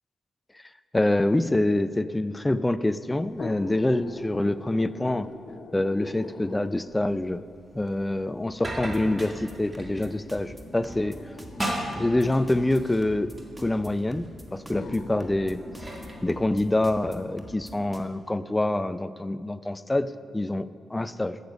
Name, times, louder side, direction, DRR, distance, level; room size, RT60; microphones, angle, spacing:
voice 1, 0.9-5.3 5.7-7.4 7.7-11.2 12.0-15.6 16.2-21.4, left 1 dB, 15° left, 14 dB, 0.4 m, -26 dB
sound 1, 3.3-7.0 7.9-8.0 9.0-13.0 14.0-14.1 14.7-17.4 17.8-17.9, left 4 dB, 55° left, 0.8 m, -43 dB
sound 2, 6.9-17.0, right 1 dB, 20° right, 2.0 m, -39 dB
sound 3, 8.7-18.0, equal, 5° right, 1.4 m, -45 dB
14.5 x 6.9 x 5.3 m, 2.7 s
cardioid pair, 70°, 0 cm